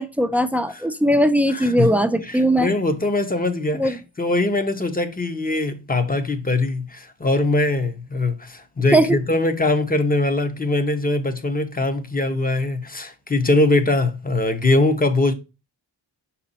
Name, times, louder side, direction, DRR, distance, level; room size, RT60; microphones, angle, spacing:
voice 1, 0.0-2.7 3.7-3.9 8.9-9.2, right 1 dB, 5° right, 0.4 m, -19 dB
voice 2, 1.5-1.9 2.2-15.3, left 2 dB, 20° left, 0.8 m, -22 dB
6.0 x 4.2 x 4.1 m
wide cardioid pair, 125°, 46 cm